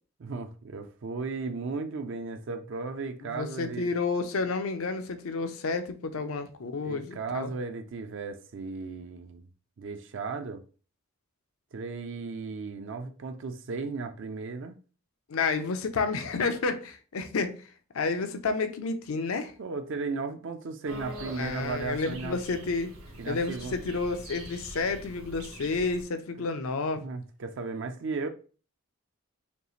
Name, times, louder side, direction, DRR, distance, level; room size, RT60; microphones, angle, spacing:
voice 1, 0.2-3.9 6.8-9.5 9.8-10.6 11.7-14.7 19.6-22.4 23.2-23.8 27.0-28.3, right 4 dB, 60° right, 0.4 m, -35 dB
voice 2, 3.2-7.5 15.3-17.6 17.9-19.5 21.4-22.9 23.3-27.0, left 4 dB, 80° left, 0.6 m, -30 dB
sound 1, 20.8-26.0, right 1 dB, 75° right, 1.1 m, -44 dB
5.2 x 2.4 x 3.1 m
head